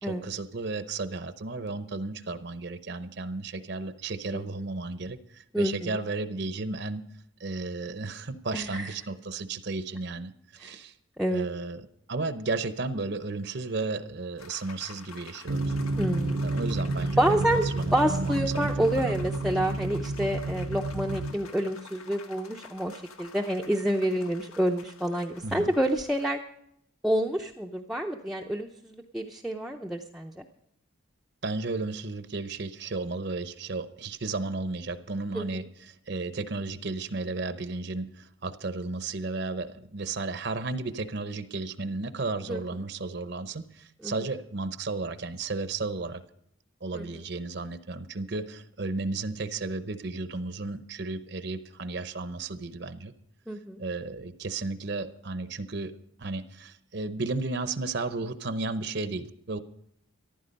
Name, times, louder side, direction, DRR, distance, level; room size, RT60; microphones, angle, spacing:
voice 1, 0.0-7.0 7.4-10.9 11.3-15.7 16.4-19.3 25.4-25.7 31.4-46.2 46.8-53.1 53.8-55.9 56.2-59.6, right 3 dB, 50° right, 12 dB, 0.7 m, -34 dB
voice 2, 5.5-6.0 8.5-8.9 10.6-10.8 11.2-11.5 16.0-16.4 17.2-17.6 17.9-26.4 27.0-30.4 35.3-35.6 42.5-42.6 44.0-44.1 46.9-47.1 53.5-53.8, right 1 dB, ahead, 1 dB, 0.6 m, -28 dB
sound 1, 14.4-26.3, left 5 dB, 85° left, 1.6 m, -49 dB
sound 2, 15.5-21.3, right 2 dB, 90° right, 0.9 m, -30 dB
14.0 x 12.0 x 5.3 m, 0.73 s
head